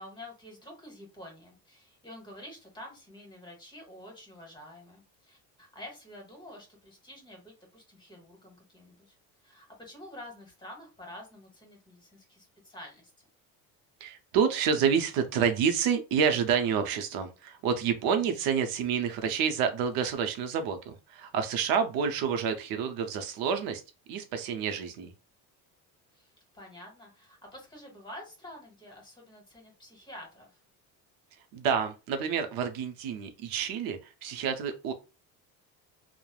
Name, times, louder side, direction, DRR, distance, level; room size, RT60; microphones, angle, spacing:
voice 1, 0.0-9.2 9.4-13.1 18.0-18.3 26.1-30.6, left 1 dB, 10° left, 1 dB, 1.0 m, -48 dB
voice 2, 14.0-23.8 24.1-25.1 31.5-34.9, right 7 dB, 70° right, 7 dB, 0.6 m, -28 dB
3.1 x 2.0 x 2.3 m, 0.29 s
cardioid pair, 140°, 37 cm